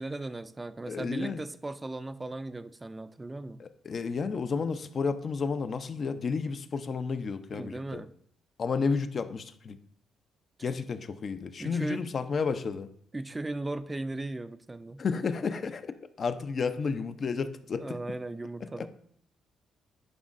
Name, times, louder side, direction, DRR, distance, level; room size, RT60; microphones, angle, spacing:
voice 1, 0.0-3.6 7.5-8.1 11.6-12.0 13.1-15.0 17.8-18.9, right 2 dB, 20° right, 0.4 m, -37 dB
voice 2, 0.9-1.4 3.6-8.0 8.6-9.8 10.6-12.9 15.0-18.0 18.8-18.9, left 5 dB, 45° left, 0.5 m, -32 dB
11.0 x 5.2 x 2.5 m
cardioid pair, 90°, 0 cm